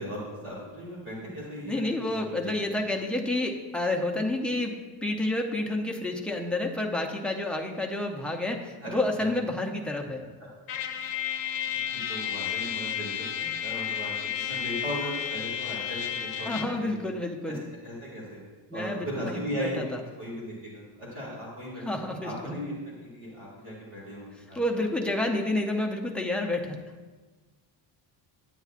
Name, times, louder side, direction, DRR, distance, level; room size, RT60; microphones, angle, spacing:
voice 1, 0.0-1.8 2.1-2.7 8.8-8.9 9.2-9.3 11.0-11.1 11.7-11.8 12.1-16.9 17.5-17.6 17.8-18.4 18.7-19.8 20.2-22.7 23.0-24.6, equal, 30° right, -5 dB, 2.1 m, -37 dB
voice 2, 1.6-10.2 16.4-17.6 18.7-20.0 21.9-22.6 24.5-26.8, left 2 dB, 5° left, 1 dB, 0.4 m, -29 dB
Trumpet, 10.7-16.8, left 9 dB, 50° left, 0.7 m, -32 dB
9.3 x 9.0 x 2.4 m, 1.3 s
cardioid pair, 165°, 45 cm